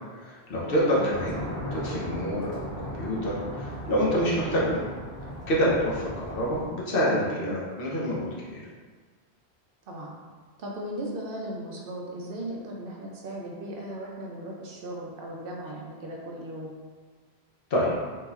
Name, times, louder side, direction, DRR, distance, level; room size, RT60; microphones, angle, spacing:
voice 1, 0.2-1.4 1.7-4.8 5.5-8.6 17.7-17.9, equal, 60° left, -6 dB, 1.0 m, -27 dB
sound 1, 1.1-6.7, equal, 35° left, 1.5 m, -37 dB
voice 2, 10.6-16.7, right 1 dB, 65° right, -2 dB, 0.7 m, -37 dB
3.6 x 2.7 x 2.4 m, 1.5 s
omnidirectional pair, 1.1 m